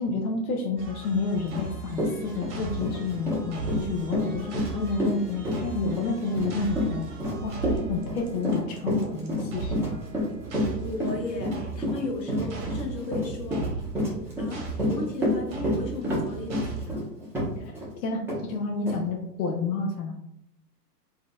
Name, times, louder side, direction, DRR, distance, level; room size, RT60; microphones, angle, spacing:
voice 1, 0.0-7.1 7.4-10.0 17.6-17.7 18.0-20.2, left 3 dB, 60° left, 1 dB, 0.7 m, -30 dB
sound 1, 0.8-16.9, right 4 dB, 45° right, 1.0 m, -38 dB
Run, 1.5-1.6 1.9-17.9 18.3-18.4 18.9-19.0, left 1 dB, 5° right, 1.0 m, -29 dB
voice 2, 10.6-13.7 14.4-17.0, left 3 dB, 85° left, 0 dB, 1.0 m, -35 dB
3.6 x 2.8 x 2.3 m, 0.77 s
hypercardioid pair, 115°, 48 cm